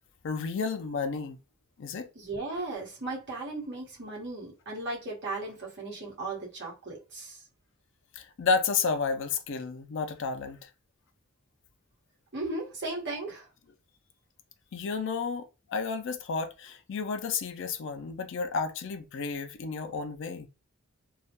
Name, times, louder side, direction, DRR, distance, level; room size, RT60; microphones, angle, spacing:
voice 1, 0.2-1.4 1.8-2.1 8.2-10.7 14.7-20.5, left 5 dB, 60° left, 0.4 m, -31 dB
voice 2, 2.1-7.4 12.3-13.4, right 2 dB, 55° right, 1.0 m, -36 dB
2.3 x 2.1 x 2.8 m
head